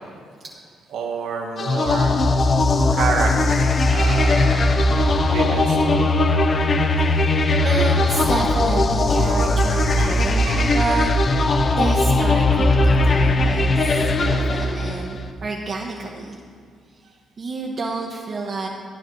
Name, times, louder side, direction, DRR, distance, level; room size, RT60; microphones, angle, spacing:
voice 1, 0.9-2.2 2.9-4.7 5.0-6.1 9.9-10.8 18.4-18.6, right 4 dB, 80° right, 2 dB, 1.5 m, -29 dB
sound 1, 1.6-15.2, left 2 dB, 45° left, 0.8 m, -19 dB
voice 2, 6.9-16.4 17.4-18.7, right 3 dB, 50° right, -2 dB, 1.3 m, -29 dB
13.0 x 10.0 x 3.9 m, 2.1 s
cardioid pair, 90°, 0 cm